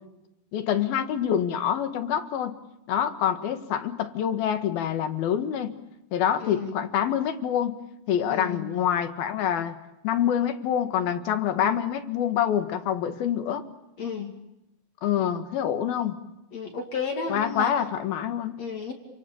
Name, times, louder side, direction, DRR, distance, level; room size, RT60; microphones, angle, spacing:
voice 1, 0.5-2.5 2.9-5.7 6.1-7.8 8.1-9.8 10.0-13.7 15.0-16.2 17.3-18.6, left 9 dB, 85° left, 9 dB, 3.7 m, -26 dB
voice 2, 6.4-6.8 8.3-8.7 14.0-14.3 16.5-17.7 18.6-18.9, left 5 dB, 50° left, 3 dB, 3.5 m, -32 dB
29.5 x 27.5 x 7.0 m, 0.92 s
omnidirectional pair, 4.1 m